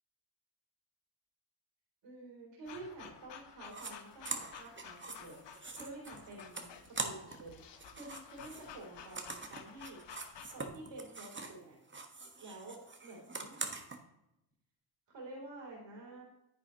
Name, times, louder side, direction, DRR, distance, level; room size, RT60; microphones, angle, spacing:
voice 1, 2.0-7.6 7.9-10.0 10.5-11.8 12.4-13.6 15.1-16.2, right 2 dB, 70° right, -3 dB, 3.3 m, -50 dB
sound 1, 2.6-10.7, left 8 dB, 65° left, 1.1 m, -53 dB
sound 2, 3.7-3.9 4.2-7.5 7.7-11.6 11.9-14.0, right 3 dB, 25° right, 1.4 m, -43 dB
10.0 x 8.3 x 3.0 m, 0.88 s
cardioid pair, 70°, 45 cm